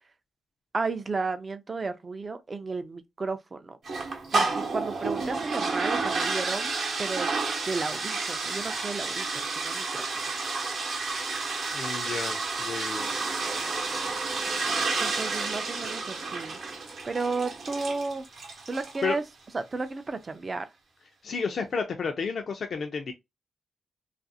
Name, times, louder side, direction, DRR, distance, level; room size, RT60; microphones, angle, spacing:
voice 1, 0.7-3.8 4.3-7.3 7.7-9.3 9.6-9.9 15.0-16.6 17.1-18.3 18.7-19.2 19.5-20.7, right 3 dB, 35° right, 0.4 m, -33 dB
sound 1, 3.8-19.1, right 3 dB, 65° right, 0.8 m, -30 dB
voice 2, 11.7-13.1 19.0-19.2 21.2-23.1, left 5 dB, 60° left, 0.4 m, -31 dB
2.4 x 2.4 x 2.6 m
wide cardioid pair, 125°, 0 cm